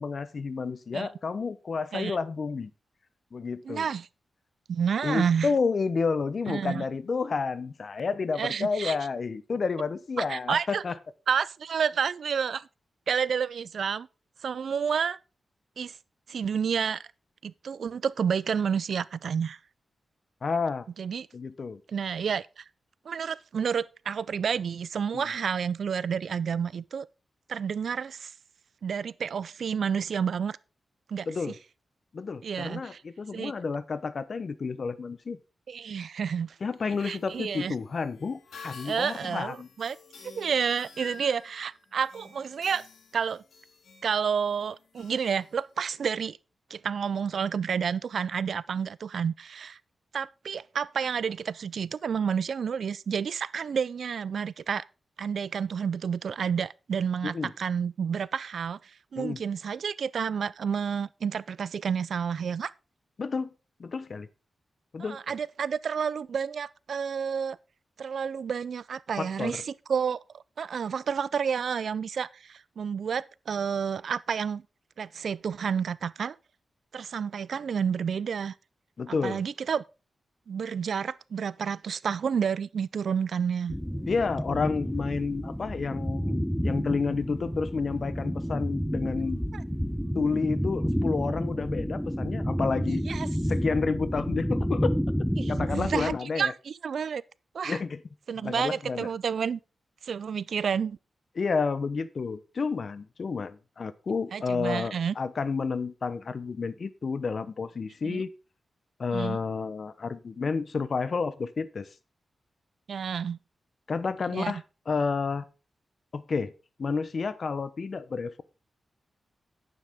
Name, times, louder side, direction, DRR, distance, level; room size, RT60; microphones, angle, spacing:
voice 1, 0.0-2.7 3.3-3.9 5.0-10.9 20.4-20.9 21.3-21.8 25.1-25.2 31.3-31.5 32.1-35.4 36.6-39.7 57.2-57.5 59.2-59.4 63.2-63.5 63.8-64.3 64.9-65.2 69.2-69.6 79.0-79.4 84.1-89.4 90.1-93.0 93.5-94.9 95.2-96.5 97.6-98.0 98.4-99.1 101.4-108.3 109.0-111.9 113.9-115.4 116.1-116.5 116.8-118.4, left 4 dB, 50° left, 0.8 m, -30 dB
voice 2, 3.6-4.1 4.7-5.5 6.5-6.8 8.4-9.0 10.2-10.8 11.3-12.7 13.1-14.1 14.4-15.2 15.8-16.0 16.3-17.0 17.4-19.6 21.0-21.3 21.9-22.6 23.1-27.1 27.5-28.3 28.8-30.6 31.1-31.6 32.4-33.0 33.3-33.5 35.7-36.6 37.0-37.7 38.8-40.0 40.2-42.9 43.1-43.4 44.0-46.4 46.7-49.8 50.1-54.9 55.2-62.7 65.0-67.6 68.0-74.6 75.0-76.4 76.9-78.5 79.1-79.8 80.5-83.7 89.5-89.6 92.9-93.3 95.4-97.2 97.5-97.8 98.3-99.6 100.0-101.0 104.3-105.1 108.0-108.2 109.1-109.4 112.9-113.4 114.3-114.6, right 7 dB, 75° right, 0.4 m, -30 dB
sound 1, 36.6-46.1, left 4 dB, 80° left, 2.3 m, -51 dB
sound 2, 83.7-96.2, equal, ahead, 0.6 m, -30 dB
10.5 x 9.2 x 3.6 m
wide cardioid pair, 105°, 0 cm